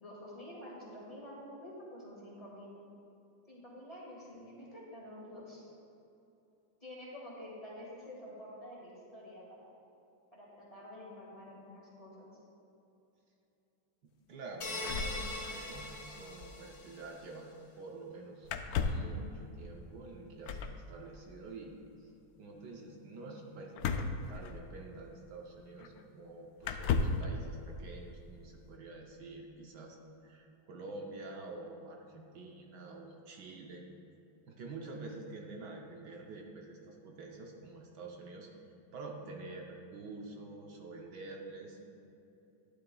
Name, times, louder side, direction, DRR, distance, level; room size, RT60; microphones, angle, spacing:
voice 1, 0.0-2.7 3.5-5.7 6.8-9.7 10.3-12.3, left 1 dB, 20° left, -6 dB, 1.8 m, -49 dB
voice 2, 14.0-22.1 22.4-30.0 30.2-33.9 34.5-38.5 38.9-41.8, right 2 dB, 70° right, 1 dB, 1.3 m, -48 dB
sound 1, 14.6-17.1, left 2 dB, 50° left, 1.6 m, -41 dB
sound 2, 14.8-15.9 16.1-16.2 16.4-16.6 18.4-19.2 20.4-20.8 23.8-24.9 25.8-25.9 26.6-27.3, left 5 dB, 70° left, 0.9 m, -34 dB
11.5 x 10.0 x 2.3 m, 2.8 s
omnidirectional pair, 2.0 m